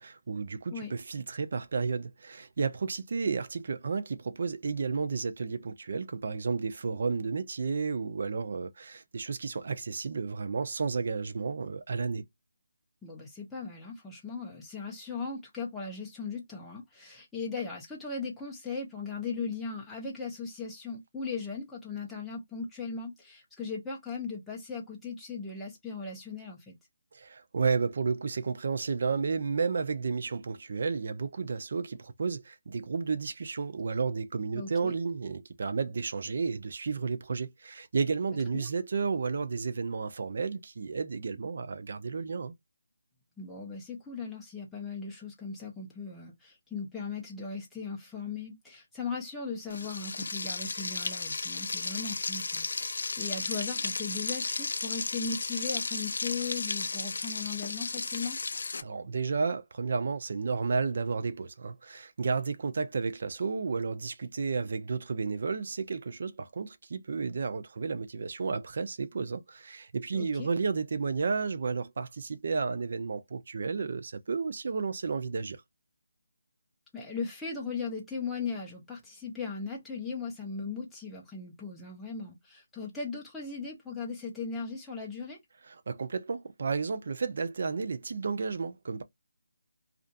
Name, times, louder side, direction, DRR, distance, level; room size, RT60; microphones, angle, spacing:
voice 1, 0.0-12.2 27.1-42.5 58.8-75.6 85.9-89.0, right 5 dB, 50° right, 0.5 m, -32 dB
voice 2, 13.0-26.7 34.5-35.0 38.3-38.7 43.4-58.4 70.1-70.5 76.9-85.4, left 4 dB, 5° left, 0.6 m, -38 dB
Frying (food), 49.7-58.8, left 4 dB, 65° left, 0.4 m, -34 dB
2.5 x 2.4 x 2.2 m
figure-of-eight pair, 165°, 0 cm